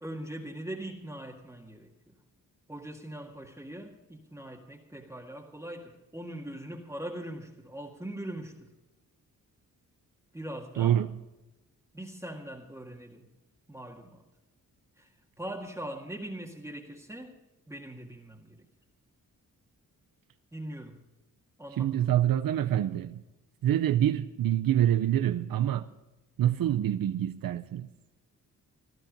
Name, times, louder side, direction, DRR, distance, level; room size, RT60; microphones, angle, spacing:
voice 1, 0.0-2.1 2.7-8.7 10.3-11.0 11.9-13.3 13.7-14.3 15.0-17.4 17.7-18.7 20.5-21.0 21.6-22.1, right 1 dB, 10° right, 1.9 m, -41 dB
voice 2, 10.8-11.1 21.8-23.2 23.6-25.9 26.4-27.9, right 11 dB, 80° right, 0.7 m, -26 dB
16.5 x 13.0 x 5.3 m
cardioid pair, 95°, 34 cm